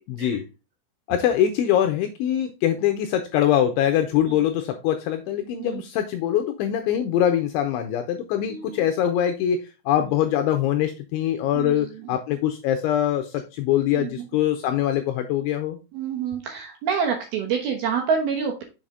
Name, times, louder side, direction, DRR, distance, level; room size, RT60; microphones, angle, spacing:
voice 1, 0.1-0.4 1.1-15.8, left 10 dB, 80° left, 6 dB, 2.8 m, -23 dB
voice 2, 8.5-8.9 11.5-12.2 13.9-14.1 15.9-18.6, right 6 dB, 70° right, 2 dB, 2.4 m, -27 dB
7.2 x 5.7 x 3.7 m, 0.29 s
omnidirectional pair, 6.0 m